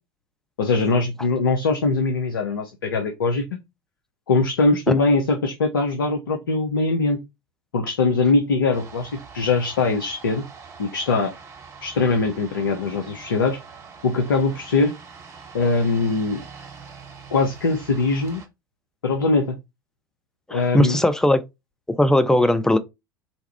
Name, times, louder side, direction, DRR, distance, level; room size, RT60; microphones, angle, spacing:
voice 1, 0.6-3.4 4.3-7.2 7.7-10.4 10.8-11.3 11.8-13.6 14.0-14.9 15.5-16.4 17.3-18.4 19.0-19.6 20.5-21.0, left 3 dB, 75° left, 0.6 m, -21 dB
sound 1, 8.7-18.5, right 5 dB, 25° right, 1.2 m, -43 dB
voice 2, 20.5-21.4 21.9-22.8, left 1 dB, 5° left, 0.5 m, -18 dB
4.2 x 2.3 x 3.3 m
figure-of-eight pair, 75°, 12 cm